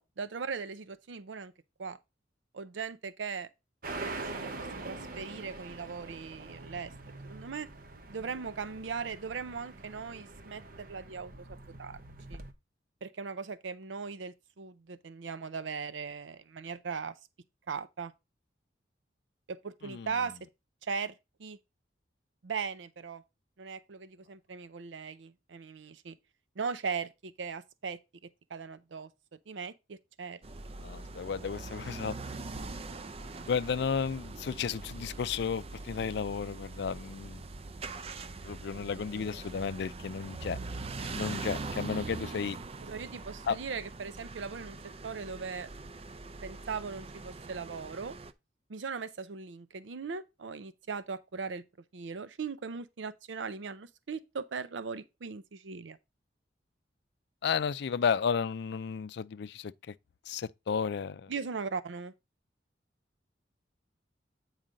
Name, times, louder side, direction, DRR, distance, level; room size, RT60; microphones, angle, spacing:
voice 1, 0.0-1.5 1.8-2.0 2.5-3.5 4.0-4.5 4.8-6.9 7.2-7.7 8.1-12.0 12.3-12.4 13.0-17.2 17.7-18.1 19.5-20.4 20.8-21.1 21.4-21.6 22.4-23.2 23.6-26.2 26.6-29.1 29.5-30.4 42.8-44.8 45.0-45.7 46.4-48.2 48.7-51.6 51.9-56.0 61.3-62.1, right 5 dB, 80° right, 0.6 m, -39 dB
sound 1, 3.8-12.5, right 2 dB, 50° right, 0.9 m, -44 dB
sound 2, 30.4-48.3, right 3 dB, 35° right, 0.5 m, -42 dB
voice 2, 30.8-32.2 33.5-37.4 38.4-40.6 41.0-42.6 43.5-43.6 57.4-59.9 60.3-61.3, left 6 dB, 65° left, 0.4 m, -33 dB
8.9 x 4.8 x 3.8 m
head